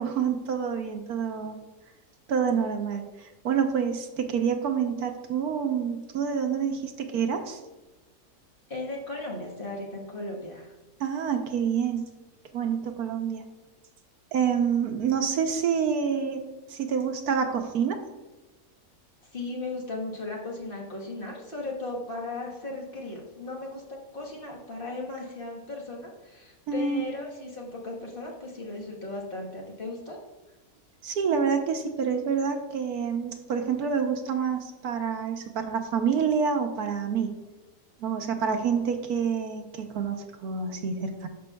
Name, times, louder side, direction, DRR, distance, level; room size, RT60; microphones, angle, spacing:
voice 1, 0.0-1.6 2.3-3.0 3.4-7.6 11.0-12.0 12.5-13.4 14.3-18.0 26.7-27.0 31.0-37.3 38.0-41.3, right 6 dB, 80° right, 5 dB, 1.3 m, -27 dB
voice 2, 8.7-10.7 19.3-30.2, left 2 dB, 35° left, -3 dB, 1.5 m, -36 dB
12.0 x 5.4 x 2.3 m, 1.1 s
omnidirectional pair, 1.6 m